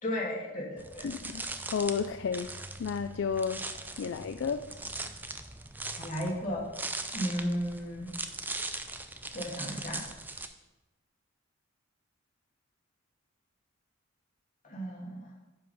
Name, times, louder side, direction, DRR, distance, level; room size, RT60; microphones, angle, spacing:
voice 1, 0.0-1.0 4.1-4.2 6.0-6.6 7.1-8.1 9.3-10.0 14.6-15.3, equal, 40° left, -4 dB, 2.7 m, -34 dB
sound 1, 0.8-10.5, right 2 dB, 10° right, 0.5 m, -40 dB
voice 2, 1.0-2.5 2.8-3.7 4.0-4.7, left 6 dB, 65° left, 10 dB, 0.4 m, -32 dB
9.5 x 5.6 x 5.6 m, 1.1 s
head